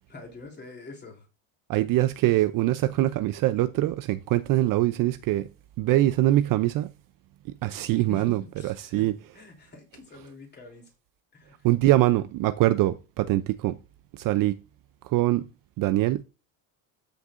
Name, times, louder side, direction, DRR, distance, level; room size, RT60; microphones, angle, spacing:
voice 1, 0.1-1.3 7.9-10.9 11.3-12.2, left 3 dB, 20° left, 3.2 m, -46 dB
voice 2, 1.7-5.5 5.8-6.9 7.6-9.1 11.6-13.8 14.1-14.6 15.0-15.4 15.8-16.2, right 15 dB, 45° right, 0.5 m, -23 dB
13.0 x 6.6 x 2.5 m
cardioid pair, 140°, 47 cm